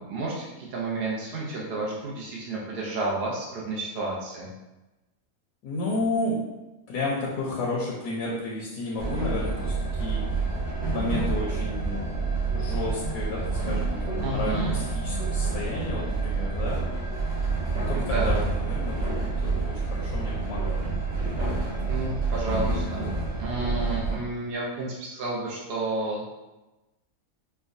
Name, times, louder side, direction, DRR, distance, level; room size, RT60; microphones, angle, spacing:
voice 1, 0.0-4.5 14.2-14.8 17.9-18.3 21.9-23.0 23.4-26.3, right 2 dB, 70° right, -4 dB, 0.5 m, -31 dB
voice 2, 5.6-6.4 6.9-10.2 10.9-16.8 17.7-20.8, left 2 dB, 85° left, -5 dB, 1.2 m, -32 dB
Train, 9.0-24.2, right 3 dB, 40° right, 1.2 m, -28 dB
4.6 x 2.1 x 2.5 m, 1.0 s
omnidirectional pair, 1.7 m